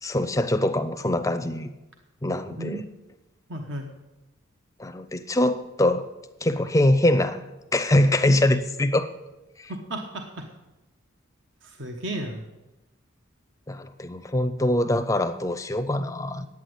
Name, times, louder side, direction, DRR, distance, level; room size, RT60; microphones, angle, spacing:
voice 1, 0.0-1.7 2.2-2.9 4.8-6.1 6.4-7.5 7.7-9.1 9.6-9.7 13.7-16.5, left 1 dB, 15° left, 10 dB, 0.6 m, -23 dB
voice 2, 3.5-3.9 9.7-10.5 11.6-12.4, right 1 dB, 60° right, 4 dB, 1.2 m, -34 dB
10.0 x 8.8 x 7.9 m, 1.0 s
head